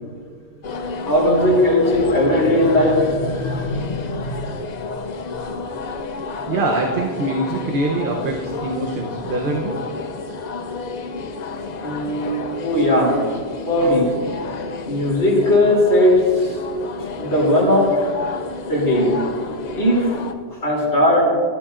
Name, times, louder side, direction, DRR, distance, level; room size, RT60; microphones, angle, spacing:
sound 1, 0.6-20.3, left 4 dB, 50° left, 0.6 m, -31 dB
voice 1, 1.0-4.4 11.8-12.3 12.6-13.2 13.7-14.1 14.8-16.6 17.2-18.0 18.7-19.3 19.8-20.1 20.5-21.3, left 1 dB, 90° left, -4 dB, 3.4 m, -18 dB
voice 2, 6.5-9.8, right 2 dB, 55° right, 1 dB, 1.0 m, -23 dB
16.0 x 11.5 x 2.5 m, 2.1 s
omnidirectional pair, 1.1 m